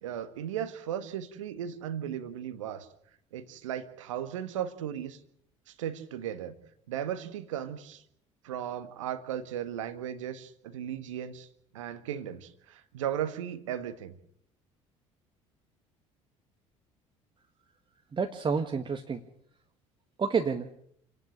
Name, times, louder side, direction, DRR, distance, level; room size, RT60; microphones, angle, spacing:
voice 1, 0.0-2.9 3.3-5.2 5.7-6.5 6.9-8.0 8.4-11.5 11.7-14.1, right 10 dB, 75° right, 12 dB, 1.6 m, -36 dB
voice 2, 18.1-19.2 20.2-20.7, right 5 dB, 30° right, 6 dB, 1.7 m, -29 dB
29.0 x 11.0 x 9.9 m, 0.71 s
figure-of-eight pair, 60°, 16 cm